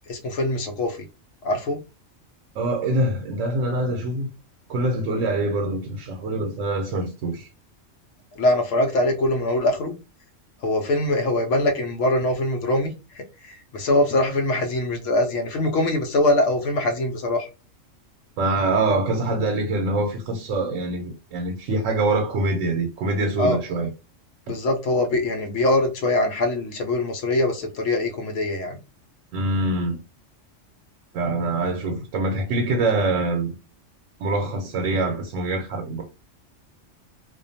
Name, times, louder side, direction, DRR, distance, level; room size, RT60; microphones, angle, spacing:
voice 1, 0.1-1.0 1.4-1.8 8.3-10.0 10.6-17.5 23.4-23.6 24.5-28.8, left 1 dB, 85° left, 1.0 m, -23 dB
voice 2, 2.6-4.3 4.7-7.5 18.4-23.9 24.5-24.6 29.3-30.0 31.1-33.5 34.2-36.0, right 2 dB, 85° right, 0.9 m, -24 dB
2.4 x 2.2 x 2.6 m
omnidirectional pair, 1.3 m